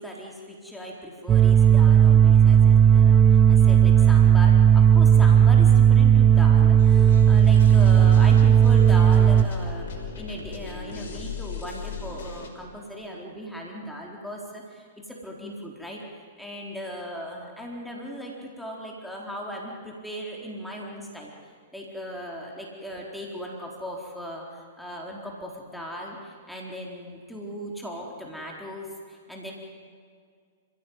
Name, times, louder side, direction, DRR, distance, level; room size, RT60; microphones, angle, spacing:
voice 1, 0.0-21.3 21.7-29.5, equal, ahead, -2 dB, 4.1 m, -38 dB
sound 1, 1.3-9.4, right 8 dB, 25° right, 0.9 m, -15 dB
sound 2, 6.8-12.5, left 5 dB, 65° left, 5.4 m, -37 dB
29.0 x 16.5 x 9.5 m, 2.1 s
figure-of-eight pair, 110°, 0 cm